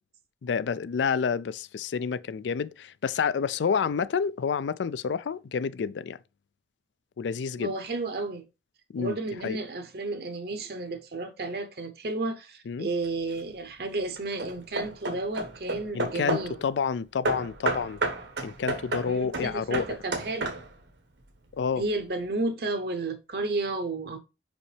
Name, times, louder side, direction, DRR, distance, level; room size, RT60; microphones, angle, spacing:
voice 1, 0.4-6.2 7.2-7.7 8.9-9.2 9.4-9.6 12.7-12.9 15.9-18.0 18.4-19.9 21.5-21.8, left 6 dB, 85° left, 0.4 m, -29 dB
voice 2, 7.6-8.4 9.0-16.6 19.0-20.6 21.8-24.2, right 2 dB, 60° right, 0.7 m, -32 dB
Hammer / Wood, 13.0-13.5 14.2-16.6 17.2-20.9, right 2 dB, 90° right, 1.3 m, -32 dB
5.5 x 5.2 x 3.3 m
head